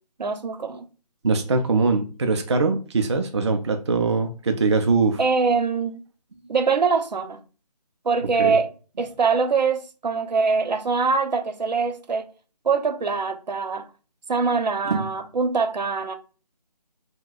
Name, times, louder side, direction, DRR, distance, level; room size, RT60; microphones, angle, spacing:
voice 1, 0.2-0.9 5.2-6.0 6.5-7.4 8.0-8.7 9.0-12.3 12.6-13.9 14.3-16.1, right 5 dB, 90° right, 0.6 m, -23 dB
voice 2, 1.2-5.2 8.4-8.6 14.9-15.1, right 4 dB, 40° right, 0.4 m, -22 dB
2.6 x 2.2 x 3.7 m
figure-of-eight pair, 165°, 21 cm